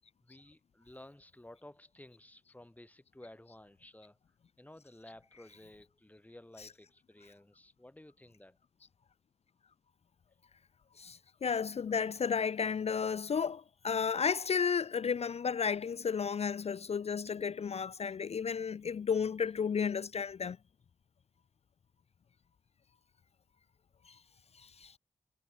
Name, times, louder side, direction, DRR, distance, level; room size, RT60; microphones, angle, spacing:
voice 1, 0.2-4.2 4.6-8.6, left 1 dB, 10° left, 6.3 m, -54 dB
voice 2, 11.0-20.6 24.1-24.2 24.6-25.0, left 6 dB, 50° left, 0.4 m, -33 dB
wide cardioid pair, 145°, 14 cm